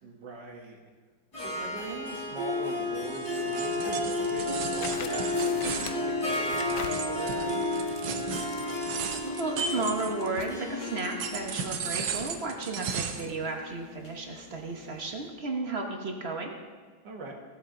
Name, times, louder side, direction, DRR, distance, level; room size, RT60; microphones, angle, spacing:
voice 1, 0.0-0.8 1.4-7.6 17.0-17.3, right 3 dB, 65° right, 1 dB, 2.0 m, -41 dB
Harp, 1.3-14.9, left 2 dB, 50° left, 3.5 m, -32 dB
sound 1, 3.0-10.5 11.0-13.3, right 6 dB, 85° right, 1.6 m, -36 dB
sound 2, 4.8-10.6, left 7 dB, 85° left, 0.7 m, -44 dB
voice 2, 9.4-16.5, right 3 dB, 40° right, 2 dB, 1.1 m, -33 dB
16.0 x 7.2 x 3.8 m, 1.5 s
omnidirectional pair, 2.1 m